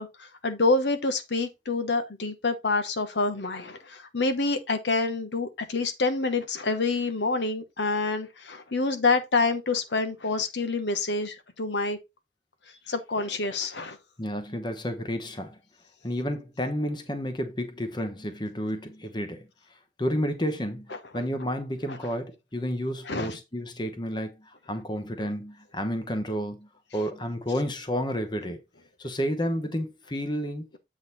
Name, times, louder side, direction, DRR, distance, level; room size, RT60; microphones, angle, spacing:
voice 1, 0.0-12.0 12.9-14.0 21.9-22.0 23.1-23.4, left 3 dB, 75° left, 1.0 m, -27 dB
voice 2, 14.2-15.6 16.0-19.5 20.0-28.6 29.0-30.6, equal, 25° left, 1.0 m, -31 dB
8.1 x 4.0 x 4.0 m
head